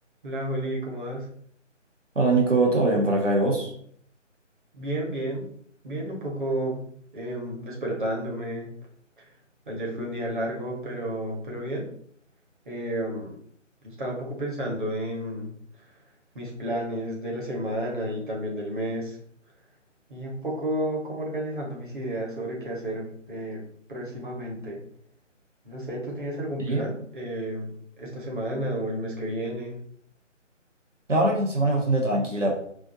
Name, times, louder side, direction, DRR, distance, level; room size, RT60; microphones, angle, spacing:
voice 1, 0.2-1.3 4.7-5.5 5.8-6.8 7.1-8.7 9.7-11.9 12.7-13.4 13.8-15.5 16.3-19.2 20.1-23.6 23.9-24.8 25.6-27.7 28.0-29.8, right 1 dB, 40° right, -2 dB, 1.5 m, -31 dB
voice 2, 2.1-3.7 26.6-26.9 31.1-32.6, right 2 dB, 70° right, 0 dB, 1.4 m, -22 dB
4.9 x 2.5 x 4.0 m, 0.62 s
figure-of-eight pair, 155°, 38 cm